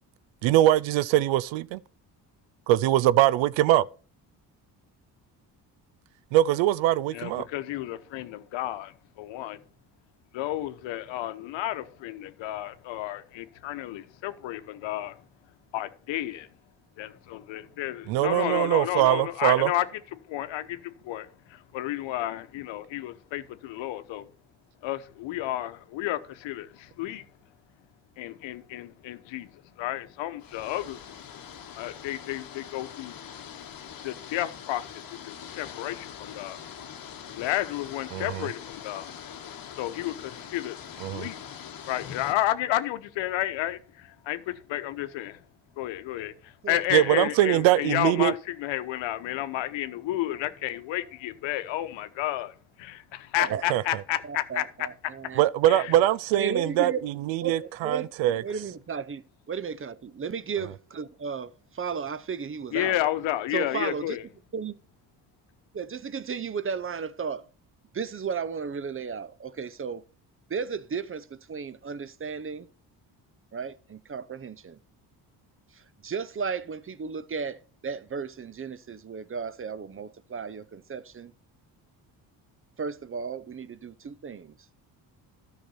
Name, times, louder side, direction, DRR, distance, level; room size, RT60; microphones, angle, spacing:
voice 1, 0.4-1.8 2.7-3.8 6.3-7.5 18.1-19.7 38.1-38.5 41.0-41.3 46.9-48.3 53.7-53.8 55.4-58.4, right 14 dB, 70° right, 0.6 m, -22 dB
voice 2, 7.1-9.6 10.3-15.3 15.7-16.5 17.0-19.9 20.3-24.3 24.8-27.2 28.2-31.1 31.8-33.2 34.0-36.6 37.3-39.1 39.8-41.4 41.8-45.4 45.8-46.3 46.7-54.6 55.7-55.9 62.7-64.2, left 14 dB, 70° left, 1.0 m, -31 dB
sound 1, 30.4-42.3, left 8 dB, 45° left, 1.2 m, -43 dB
voice 3, 54.2-55.5 56.3-57.0 57.4-58.1 58.4-63.0 63.5-64.2 64.5-64.8 65.7-67.4 67.9-70.0 70.5-72.7 73.5-74.8 75.7-81.3 82.8-84.6, right 6 dB, 25° right, 0.7 m, -34 dB
13.0 x 6.0 x 4.2 m
hypercardioid pair, 55°, 48 cm